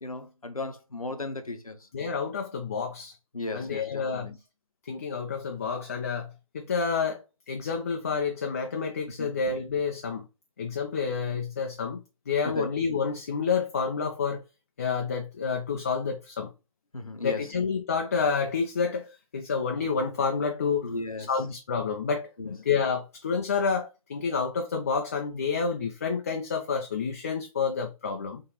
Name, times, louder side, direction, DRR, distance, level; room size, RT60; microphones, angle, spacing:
voice 1, 0.0-1.9 3.3-4.4 9.2-9.4 12.4-12.7 16.9-17.5 20.8-21.3 22.4-22.5, left 2 dB, 85° left, 0.8 m, -36 dB
voice 2, 1.9-3.1 3.5-4.3 4.9-6.3 6.5-7.2 7.5-10.2 10.6-14.4 14.8-16.5 17.2-20.9 21.3-28.4, left 5 dB, 25° left, 0.4 m, -29 dB
3.9 x 3.0 x 2.9 m
figure-of-eight pair, 145°, 18 cm